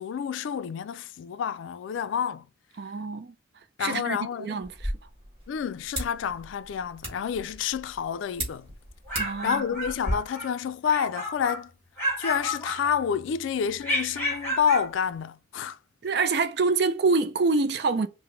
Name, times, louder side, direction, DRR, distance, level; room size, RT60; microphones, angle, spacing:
voice 1, 0.0-2.5 3.8-4.6 5.5-8.7 9.1-11.7 12.2-15.8, left 7 dB, 80° left, 0.3 m, -29 dB
voice 2, 2.8-3.3 3.8-4.9 9.2-9.6 16.0-18.1, right 4 dB, 55° right, 0.5 m, -26 dB
sound 1, 4.6-10.1, right 1 dB, 30° right, 2.2 m, -37 dB
sound 2, 8.8-10.5 10.8-11.6 12.0-13.2 13.8-14.9, equal, 10° left, 1.4 m, -31 dB
4.8 x 2.1 x 3.2 m
head